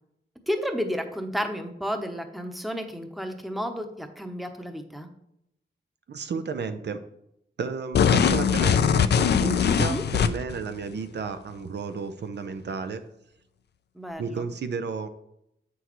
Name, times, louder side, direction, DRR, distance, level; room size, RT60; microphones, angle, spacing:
voice 1, 0.5-5.1 9.8-10.0 13.9-14.5, equal, ahead, 5 dB, 0.8 m, -32 dB
voice 2, 6.1-7.0 7.6-13.0 14.2-15.1, right 5 dB, 65° right, 9 dB, 0.5 m, -32 dB
sound 1, 7.9-10.6, left 7 dB, 65° left, 0.4 m, -21 dB
7.9 x 6.1 x 3.0 m, 0.80 s
cardioid pair, 85°, 19 cm